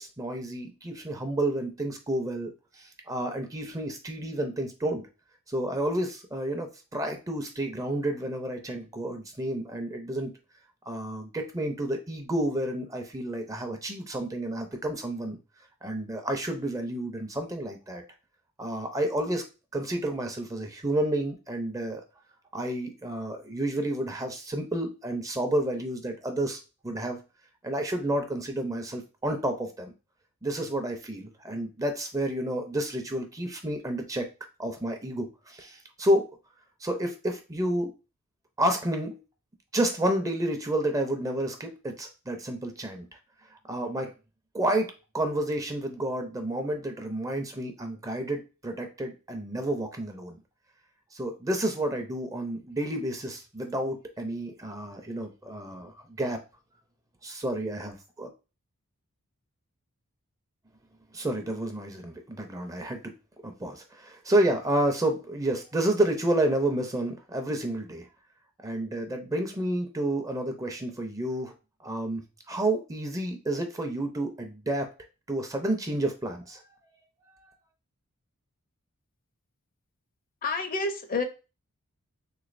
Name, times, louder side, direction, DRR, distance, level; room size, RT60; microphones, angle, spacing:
voice 1, 0.0-5.1 5.5-10.3 10.9-15.4 15.8-18.0 18.6-19.4 19.7-22.0 22.5-27.2 27.6-29.9 30.4-34.3 34.6-36.2 36.8-37.9 38.6-39.2 39.7-43.1 43.7-44.1 44.5-50.4 51.1-56.4 57.2-58.3 61.1-63.0 63.4-68.1 68.6-71.5 71.8-74.9 75.3-76.6, right 1 dB, 15° right, 5 dB, 0.5 m, -30 dB
voice 2, 80.4-81.2, left 3 dB, 40° left, 7 dB, 0.5 m, -29 dB
3.5 x 3.0 x 2.5 m, 0.30 s
head